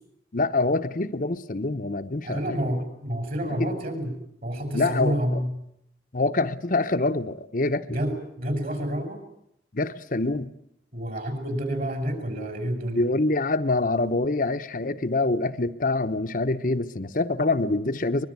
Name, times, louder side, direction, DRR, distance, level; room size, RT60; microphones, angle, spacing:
voice 1, 0.3-2.6 3.6-3.7 4.7-5.4 6.1-8.0 9.7-10.5 12.9-18.3, left 2 dB, 50° left, 7 dB, 0.9 m, -25 dB
voice 2, 2.2-5.5 7.9-9.2 10.9-13.0, equal, 50° right, 7 dB, 5.7 m, -29 dB
23.0 x 22.0 x 9.6 m, 0.75 s
head